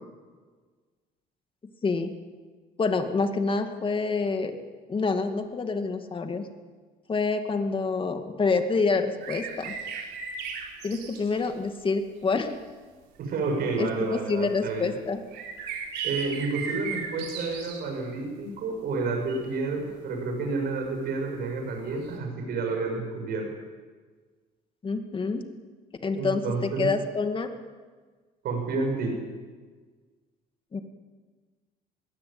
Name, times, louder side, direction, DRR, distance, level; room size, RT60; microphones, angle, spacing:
voice 1, 2.8-4.6 4.9-6.5 7.1-9.8 10.8-12.5 13.8-15.2 24.8-25.4 26.0-27.5 30.7-30.8, left 4 dB, 30° left, 6 dB, 2.3 m, -27 dB
sound 1, 9.2-11.5 12.4-12.5 13.3-13.4 15.3-17.8 19.3-19.4 22.0-22.1, right 6 dB, 90° right, 4.2 m, -36 dB
voice 2, 13.2-14.9 16.0-23.5 26.2-26.9 28.4-29.1, right 3 dB, 65° right, 2 dB, 7.3 m, -30 dB
21.0 x 16.5 x 8.9 m, 1.4 s
cardioid pair, 110°, 17 cm